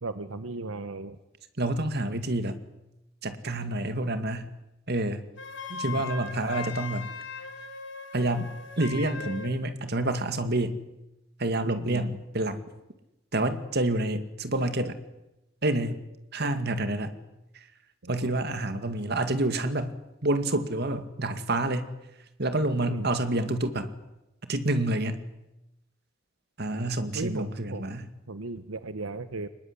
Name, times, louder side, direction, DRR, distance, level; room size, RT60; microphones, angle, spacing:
voice 1, 0.0-1.2 5.7-6.0 11.6-12.1 16.4-16.5 18.0-18.3 22.9-23.1 27.1-27.9 28.3-29.5, right 3 dB, 80° right, 12 dB, 1.1 m, -36 dB
voice 2, 1.6-2.6 3.2-4.5 4.9-5.2 5.8-7.1 8.1-10.8 11.4-12.6 13.3-15.0 15.6-16.0 16.3-17.1 18.1-19.9 20.2-21.9 22.4-23.9 24.5-25.2 26.6-28.1, right 1 dB, 50° right, 9 dB, 2.2 m, -28 dB
Wind instrument woodwind instrument, 5.4-9.6, left 4 dB, 60° left, 3.8 m, -39 dB
24.0 x 20.5 x 9.8 m, 0.92 s
head